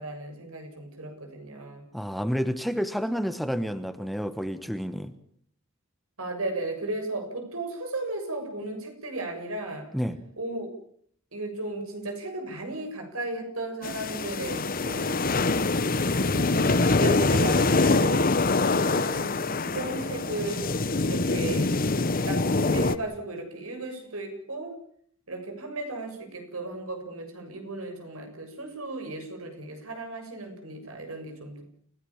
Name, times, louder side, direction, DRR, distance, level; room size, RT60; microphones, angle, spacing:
voice 1, 0.0-2.0 6.2-9.9 10.4-10.7 11.3-15.2 16.2-20.6 21.1-21.7 22.3-24.7 25.3-31.6, right 2 dB, 90° right, 5 dB, 7.4 m, -35 dB
voice 2, 1.9-5.1 9.9-10.2, equal, ahead, 11 dB, 1.2 m, -29 dB
sound 1, 13.8-23.0, left 3 dB, 45° left, 1.1 m, -24 dB
29.5 x 17.0 x 7.3 m, 0.63 s
head